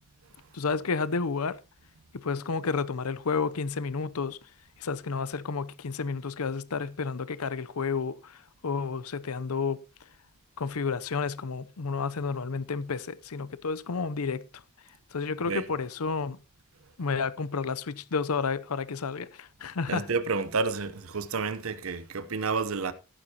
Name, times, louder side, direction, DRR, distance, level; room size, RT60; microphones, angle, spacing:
voice 1, 0.5-1.6 2.1-4.4 4.8-8.4 8.6-9.8 10.6-14.4 15.1-16.4 17.0-20.1, left 5 dB, 85° left, 0.7 m, -31 dB
voice 2, 19.9-22.9, right 4 dB, 75° right, 0.8 m, -30 dB
14.5 x 11.0 x 2.9 m
head